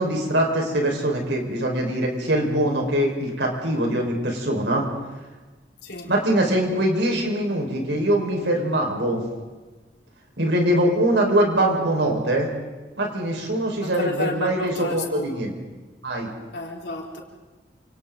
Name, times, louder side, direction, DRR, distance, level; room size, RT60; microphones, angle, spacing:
voice 1, 0.0-4.8 6.1-9.2 10.4-12.5 13.0-15.5 16.0-16.3, right 1 dB, 85° right, 1 dB, 5.2 m, -23 dB
voice 2, 13.8-15.4 16.5-17.2, left 2 dB, 75° left, -2 dB, 4.3 m, -31 dB
28.5 x 27.5 x 4.0 m, 1.2 s
head